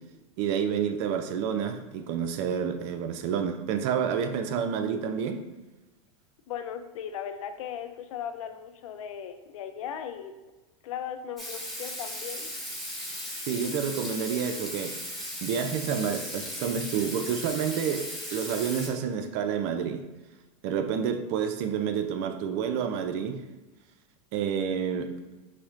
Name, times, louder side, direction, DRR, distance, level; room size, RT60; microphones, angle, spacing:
voice 1, 0.4-5.4 13.5-20.0 20.6-23.4 24.3-25.1, right 7 dB, 60° right, 0.5 m, -29 dB
voice 2, 6.5-10.3 10.8-12.5, left 8 dB, 80° left, 0.4 m, -37 dB
Water tap faucet / Sink (filling or washing), 11.4-18.9, equal, ahead, 1.2 m, -37 dB
5.6 x 2.1 x 2.5 m
hypercardioid pair, 100°, 17 cm